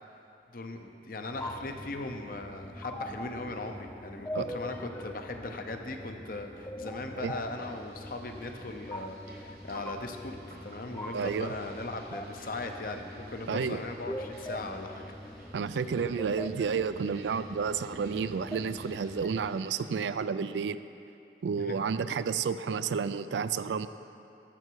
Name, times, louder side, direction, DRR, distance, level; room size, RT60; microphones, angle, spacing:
voice 1, 0.5-15.3 21.6-21.7, left 2 dB, 55° left, 5 dB, 0.7 m, -39 dB
sound 1, 1.3-19.5, left 1 dB, 10° left, 0.3 m, -43 dB
sound 2, 7.6-19.8, right 2 dB, 55° right, 1.2 m, -55 dB
voice 2, 11.1-11.5 13.5-13.8 15.5-20.8 21.4-23.9, right 6 dB, 85° right, 13 dB, 0.3 m, -31 dB
13.0 x 6.7 x 4.6 m, 2.7 s
head